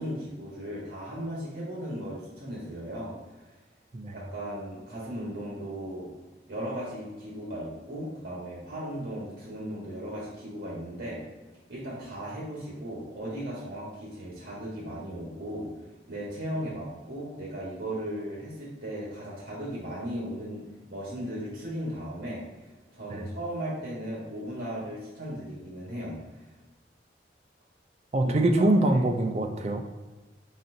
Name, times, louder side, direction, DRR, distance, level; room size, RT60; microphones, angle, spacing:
voice 1, 0.0-3.1 4.1-6.1 6.5-11.2 11.7-15.7 16.1-20.6 20.9-22.4 22.9-26.2 28.2-29.0, equal, 85° right, -5 dB, 1.2 m, -36 dB
voice 2, 28.1-29.9, right 1 dB, 35° right, 5 dB, 0.4 m, -24 dB
4.3 x 4.0 x 2.6 m, 1.2 s
head